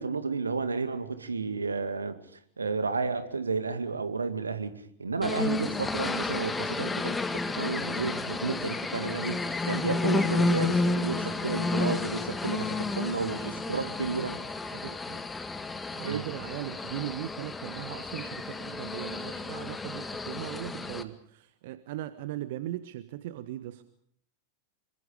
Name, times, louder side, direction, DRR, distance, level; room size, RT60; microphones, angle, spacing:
voice 1, 0.0-2.2 2.6-4.7 5.0-9.4 9.6-14.3 16.0-16.2, right 4 dB, 75° right, 10 dB, 2.3 m, -32 dB
sound 1, 5.2-21.0, left 3 dB, 10° left, 2.0 m, -31 dB
voice 2, 13.1-14.3 14.7-15.2 15.9-23.8, right 13 dB, 55° right, 12 dB, 1.3 m, -39 dB
26.5 x 25.0 x 5.1 m, 0.64 s
figure-of-eight pair, 90°, 0 cm